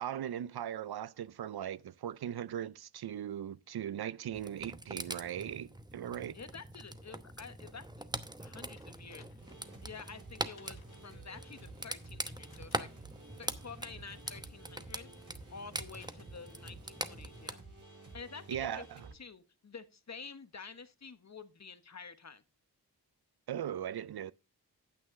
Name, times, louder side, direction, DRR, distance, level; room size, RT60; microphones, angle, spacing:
voice 1, 0.0-6.4 18.5-19.1 23.5-24.3, right 10 dB, 70° right, 0.5 m, -39 dB
sound 1, 4.3-17.5, right 1 dB, 10° right, 0.8 m, -43 dB
voice 2, 6.3-8.1 8.4-9.3 9.8-12.9 13.4-15.1 15.5-17.6 18.1-18.9 19.1-22.4, left 5 dB, 40° left, 1.0 m, -49 dB
sound 2, 8.8-9.8 10.5-11.2 12.5-13.1 14.3-14.7 15.9-16.3 17.3-17.4, left 6 dB, 65° left, 1.2 m, -63 dB
sound 3, 9.4-19.1, right 3 dB, 50° right, 4.3 m, -53 dB
9.3 x 8.5 x 3.7 m
cardioid pair, 55°, 40 cm